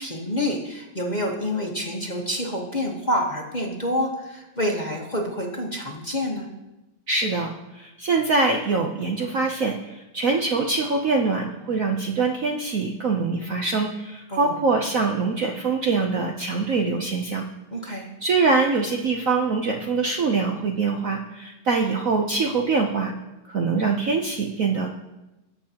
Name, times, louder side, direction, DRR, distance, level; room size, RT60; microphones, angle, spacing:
voice 1, 0.0-6.5 14.3-14.6 17.7-18.1, left 1 dB, 25° left, -1 dB, 1.1 m, -28 dB
voice 2, 7.1-17.4 18.2-23.1 23.5-24.9, right 4 dB, 60° right, 1 dB, 0.9 m, -24 dB
19.0 x 7.9 x 2.9 m, 0.99 s
omnidirectional pair, 2.2 m